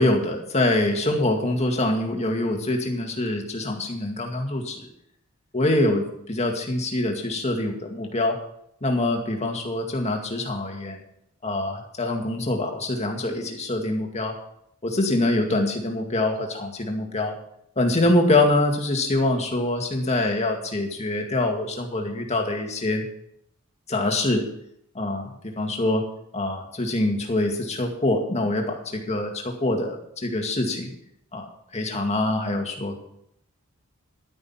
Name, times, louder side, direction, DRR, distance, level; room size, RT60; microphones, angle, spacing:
voice 1, 0.0-4.9 5.5-8.4 8.8-11.0 11.4-14.3 14.8-17.3 17.8-23.0 23.9-24.4 24.9-26.0 26.3-30.9 31.3-31.5 31.7-33.0, left 2 dB, 30° left, 2 dB, 2.1 m, -24 dB
11.5 x 9.8 x 5.8 m, 0.74 s
head